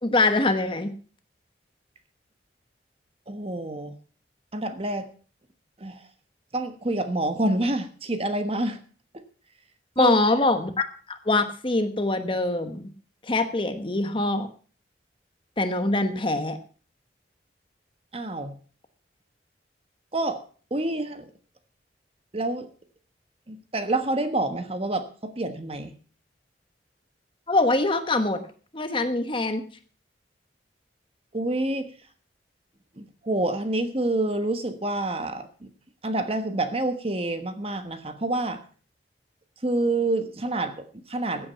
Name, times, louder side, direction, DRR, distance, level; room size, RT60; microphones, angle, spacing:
voice 1, 0.0-0.9 10.0-10.7 11.1-12.9 13.3-14.5 15.6-16.6 27.5-28.4 28.7-29.6, left 2 dB, 30° left, 9 dB, 1.2 m, -23 dB
voice 2, 3.3-4.0 4.5-5.1 5.8-6.1 6.5-8.8 9.1-9.2 10.0-10.1 18.1-18.6 20.1-20.4 20.7-21.3 22.3-22.7 23.5-26.0 31.3-31.9 33.0-35.7 36.0-38.6 39.6-41.5, right 2 dB, 35° right, 9 dB, 1.2 m, -28 dB
15.5 x 8.5 x 5.7 m, 0.41 s
head